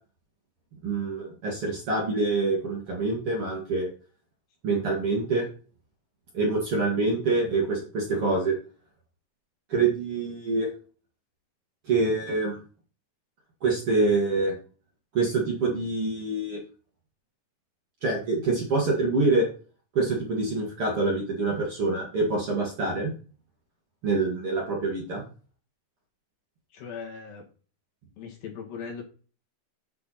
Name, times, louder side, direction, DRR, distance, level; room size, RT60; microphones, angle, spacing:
voice 1, 0.8-3.9 4.6-5.5 6.3-8.6 9.7-10.7 11.9-12.6 13.6-14.5 15.1-16.6 18.0-19.5 19.9-23.1 24.0-25.2, right 3 dB, 45° right, -2 dB, 2.2 m, -26 dB
voice 2, 26.7-27.4 28.2-29.0, left 6 dB, 65° left, 0 dB, 3.4 m, -38 dB
8.3 x 5.6 x 4.2 m, 0.39 s
omnidirectional pair, 4.4 m